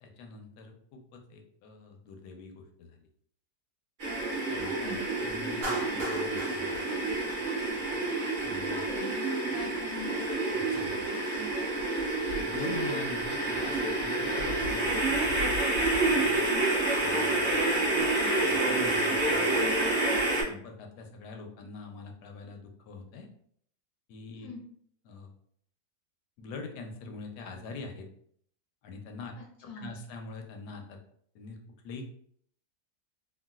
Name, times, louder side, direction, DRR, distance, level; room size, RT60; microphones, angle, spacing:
voice 1, 0.0-3.0 4.5-6.9 8.4-8.8 10.6-10.9 12.3-15.4 16.1-16.4 17.0-17.6 18.4-19.7 20.5-23.3 24.1-24.5 25.1-25.3 26.4-28.1 28.8-29.3 29.8-31.0 31.3-31.6 31.8-32.0, left 4 dB, 85° left, 3 dB, 1.2 m, -44 dB
sound 1, 4.0-20.4, right 2 dB, 50° right, 1.5 m, -28 dB
voice 2, 4.6-5.1 8.7-9.2 9.5-10.3 16.4-16.6 24.4-24.6 29.4-30.0, left 3 dB, 40° left, -3 dB, 0.5 m, -42 dB
Clapping, 5.6-7.9, right 1 dB, 80° right, 1.7 m, -39 dB
3.7 x 2.2 x 2.3 m, 0.64 s
omnidirectional pair, 1.7 m